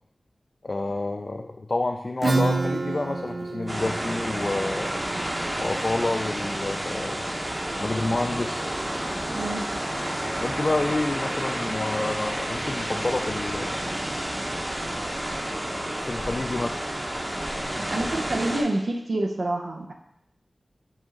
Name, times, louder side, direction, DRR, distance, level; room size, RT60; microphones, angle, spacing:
voice 1, 0.6-5.0 5.6-7.2 7.8-8.7 10.4-13.7 15.9-16.8, left 2 dB, 45° left, 3 dB, 0.4 m, -29 dB
Acoustic guitar / Strum, 2.2-7.6, right 3 dB, 60° right, 0.4 m, -30 dB
sound 1, 3.7-18.6, right 1 dB, 35° right, 1.1 m, -30 dB
voice 2, 9.3-9.6 17.8-19.9, right 2 dB, 80° right, 2 dB, 0.8 m, -27 dB
sound 2, 9.7-16.7, left 2 dB, 80° left, 1.1 m, -48 dB
6.2 x 4.3 x 3.8 m, 0.81 s
wide cardioid pair, 65°, 0 cm